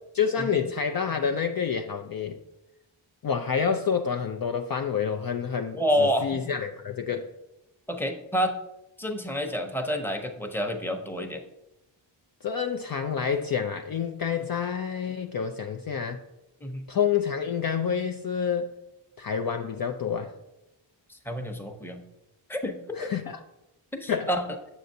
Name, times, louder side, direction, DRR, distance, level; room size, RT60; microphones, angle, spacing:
voice 1, 0.1-2.4 3.2-7.3 12.4-16.2 16.9-18.7 19.2-20.3 23.0-23.4 24.1-24.3, left 7 dB, 45° left, 0.5 m, -28 dB
voice 2, 5.7-6.4 7.9-8.6 9.0-11.4 16.6-16.8 21.1-22.0 22.5-23.0 23.9-24.5, equal, 5° left, 0.8 m, -29 dB
6.8 x 6.3 x 2.7 m
cardioid pair, 40°, 49 cm